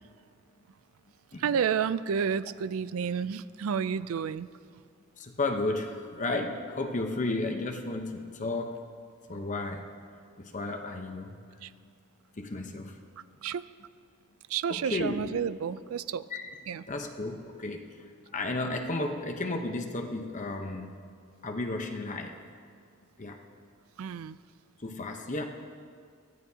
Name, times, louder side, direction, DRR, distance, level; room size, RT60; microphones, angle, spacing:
voice 1, 1.4-4.5 11.6-11.7 13.4-13.7 14.5-16.3 16.7-16.8 24.0-24.4, right 7 dB, 80° right, 16 dB, 0.4 m, -30 dB
voice 2, 5.2-8.8 9.3-9.8 10.4-11.4 12.3-13.0 14.7-15.2 16.3-16.5 16.9-18.0 18.3-20.9 21.4-22.3 23.2-23.4 24.8-25.4, left 2 dB, 35° left, 3 dB, 0.9 m, -33 dB
23.5 x 15.0 x 2.8 m, 2.1 s
head